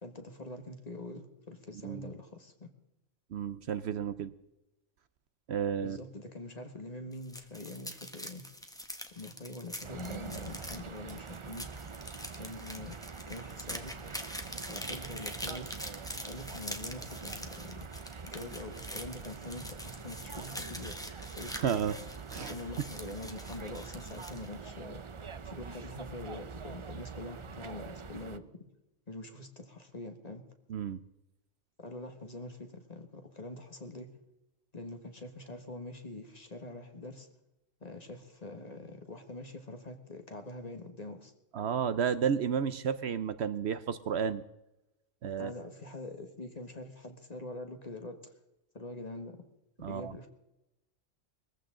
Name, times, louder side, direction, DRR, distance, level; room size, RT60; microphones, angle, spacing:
voice 1, 0.0-2.7 5.8-8.5 9.1-11.8 12.3-14.0 14.7-15.8 16.3-17.9 18.2-21.6 22.3-25.0 25.4-28.6 29.1-30.5 31.8-34.1 34.7-37.3 37.8-41.3 45.4-48.3 48.7-49.5 49.8-50.3, left 2 dB, 35° left, 6 dB, 1.6 m, -44 dB
voice 2, 3.3-4.3 5.5-6.0 21.5-22.0 22.3-22.5 30.7-31.0 41.5-44.4 45.2-45.5 49.8-50.1, right 7 dB, 65° right, 12 dB, 0.9 m, -32 dB
sound 1, 7.1-24.5, equal, 5° left, 1.2 m, -44 dB
sound 2, 9.8-28.4, right 5 dB, 40° right, 0.4 m, -45 dB
21.0 x 15.0 x 3.8 m, 0.91 s
omnidirectional pair, 1.3 m